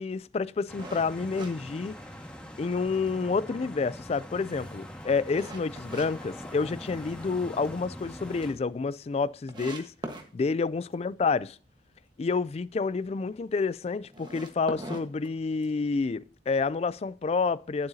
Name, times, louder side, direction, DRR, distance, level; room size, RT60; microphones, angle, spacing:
voice 1, 0.0-1.9 2.6-9.9 10.3-11.6 12.2-17.9, left 4 dB, 35° left, 0.3 m, -29 dB
sound 1, 0.7-8.5, equal, 5° left, 1.6 m, -43 dB
sound 2, 0.8-2.5 2.9-3.0 3.5-6.1 6.5-7.2 7.6-7.7 8.0-8.1 8.3-8.4 9.0-9.1 9.5-10.3 14.0-15.9, right 1 dB, 25° right, 1.3 m, -41 dB
11.5 x 7.7 x 2.7 m
head